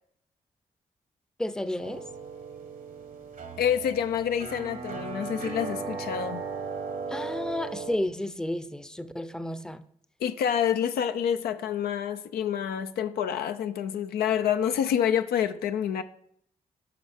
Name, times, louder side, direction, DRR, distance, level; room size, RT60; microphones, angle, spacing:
voice 1, 1.4-2.1 7.1-9.8, left 1 dB, 5° left, 0.5 m, -32 dB
sound 1, 1.8-8.0, right 5 dB, 60° right, 1.1 m, -37 dB
voice 2, 3.6-6.4 10.2-16.0, left 9 dB, 80° left, 0.4 m, -27 dB
8.5 x 5.4 x 3.5 m
supercardioid pair, 40°, 16 cm